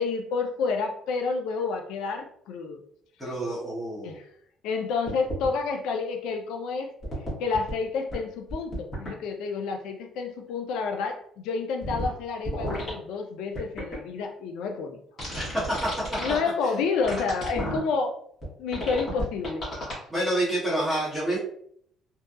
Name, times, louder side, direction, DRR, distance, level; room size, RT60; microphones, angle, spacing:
voice 1, 0.0-2.8 4.0-4.3 4.6-6.9 7.4-15.0 16.2-18.2 18.6-19.7, left 4 dB, 85° left, 4 dB, 0.3 m, -29 dB
voice 2, 3.2-4.1 15.3-15.9 20.1-21.4, right 1 dB, 5° left, -11 dB, 0.9 m, -28 dB
sound 1, 5.1-5.5 7.0-7.7 8.1-8.2 8.5-9.1 11.8-12.1 12.4-12.9 13.6-14.0 15.2-16.4 17.0-17.8 18.4-18.5 18.7-19.9, equal, 35° left, 1.0 m, -32 dB
2.7 x 2.2 x 2.3 m, 0.65 s
cardioid pair, 160°, 0 cm